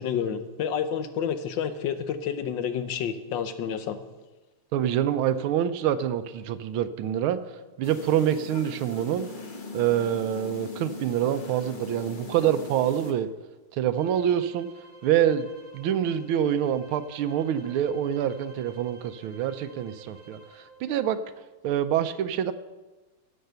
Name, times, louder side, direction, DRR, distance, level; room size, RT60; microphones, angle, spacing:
voice 1, 0.0-4.0, left 8 dB, 65° left, 10 dB, 1.4 m, -29 dB
voice 2, 4.7-7.4 7.8-9.3 9.7-13.3 13.7-14.7 15.0-15.5 15.7-21.2 21.6-22.5, right 10 dB, 80° right, 11 dB, 1.5 m, -26 dB
sound 1, 7.8-13.1, left 3 dB, 30° left, 1.1 m, -40 dB
sound 2, 13.9-20.7, right 3 dB, 50° left, 4.6 m, -50 dB
15.0 x 6.5 x 6.6 m, 1.2 s
omnidirectional pair, 2.4 m